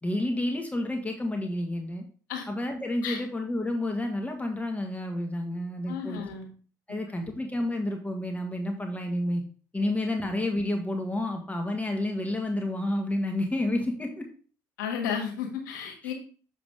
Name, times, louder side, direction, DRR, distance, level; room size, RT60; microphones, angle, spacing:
voice 1, 0.0-2.0 2.5-6.2 6.9-9.4 9.7-14.3 16.0-16.1, left 1 dB, 15° left, 3 dB, 1.4 m, -30 dB
voice 2, 5.9-6.5 6.9-7.3 14.8-16.1, left 7 dB, 85° left, 2 dB, 1.5 m, -33 dB
7.2 x 5.0 x 3.5 m, 0.40 s
hypercardioid pair, 60°, 10 cm